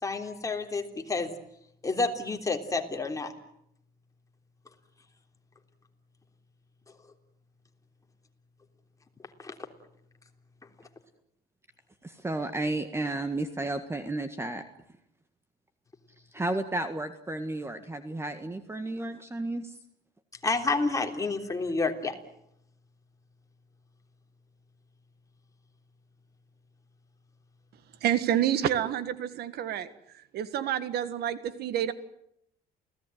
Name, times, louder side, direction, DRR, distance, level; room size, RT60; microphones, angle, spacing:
voice 1, 0.0-1.3 1.8-3.3 9.4-9.6 20.4-22.2, left 3 dB, 20° left, 4 dB, 3.4 m, -29 dB
voice 2, 12.0-14.6 16.3-19.8, right 2 dB, 15° right, 9 dB, 1.7 m, -32 dB
voice 3, 28.0-29.9 30.1-31.9, right 10 dB, 70° right, 14 dB, 1.7 m, -28 dB
28.5 x 17.5 x 9.3 m, 0.76 s
cardioid pair, 110°, 17 cm